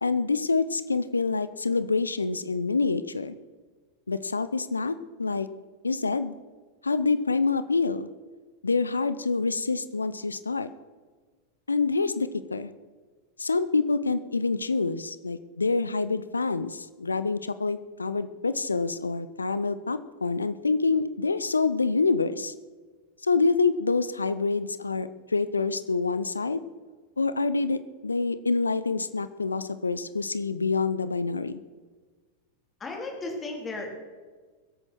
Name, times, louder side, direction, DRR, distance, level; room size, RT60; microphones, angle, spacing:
voice 1, 0.0-3.4 4.1-5.5 5.8-6.3 6.8-8.1 8.6-10.7 11.7-12.7 13.4-22.5 23.2-26.6 27.2-31.5, left 4 dB, 75° left, 14 dB, 0.6 m, -26 dB
voice 2, 32.8-33.9, left 2 dB, 20° left, 1 dB, 3.5 m, -35 dB
21.5 x 8.8 x 4.5 m, 1.4 s
figure-of-eight pair, 90°, 0 cm